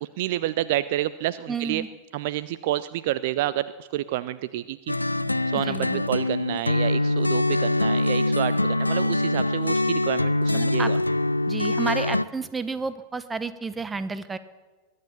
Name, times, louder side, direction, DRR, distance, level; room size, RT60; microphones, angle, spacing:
voice 1, 0.2-1.8 2.1-4.8 5.5-11.0, right 14 dB, 50° right, 16 dB, 0.4 m, -29 dB
voice 2, 1.5-1.9 5.5-6.0 10.5-10.9 11.5-14.4, right 4 dB, 15° right, 14 dB, 0.9 m, -31 dB
sound 1, 4.9-12.2, left 1 dB, 85° left, 0.4 m, -24 dB
22.0 x 9.3 x 7.0 m, 1.3 s
figure-of-eight pair, 90°, 0 cm